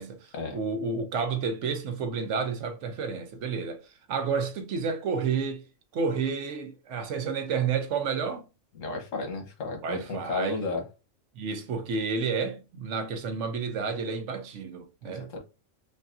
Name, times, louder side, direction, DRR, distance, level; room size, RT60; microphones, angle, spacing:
voice 1, 0.0-3.8 4.1-5.6 5.9-8.4 9.8-10.6 11.4-15.3, right 5 dB, 70° right, 0.9 m, -30 dB
voice 2, 8.8-10.8 15.0-15.4, left 3 dB, 85° left, 1.4 m, -33 dB
5.2 x 2.3 x 2.5 m
omnidirectional pair, 1.3 m